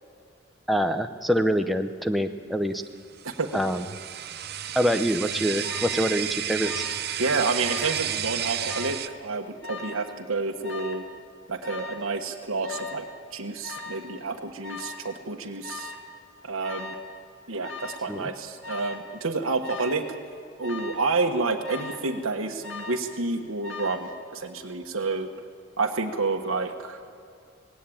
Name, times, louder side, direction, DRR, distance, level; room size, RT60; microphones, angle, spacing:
voice 1, 0.7-2.8 3.5-3.9 4.7-6.8 18.1-18.3, equal, ahead, 5 dB, 0.7 m, -25 dB
sound 1, 3.2-9.1, right 10 dB, 50° right, 0.7 m, -32 dB
voice 2, 3.2-3.6 7.2-11.0 11.5-13.0 13.3-15.9 16.4-16.9 17.5-20.0 20.6-25.3 25.8-27.0, right 3 dB, 85° right, 3 dB, 1.4 m, -29 dB
Alarm, 5.6-6.1 6.6-7.1 7.4-8.1 8.6-9.0 9.6-10.1 10.6-11.1 11.6-12.1 12.6-13.1 13.6-14.1 14.6-15.1 15.6-16.1 16.6-17.1 17.6-18.1 18.6-19.1 19.6-20.1 20.6-21.1 21.6-22.1 22.6-23.1 23.6-24.1, left 4 dB, 70° left, 2.2 m, -39 dB
19.0 x 17.0 x 8.7 m, 2.4 s
head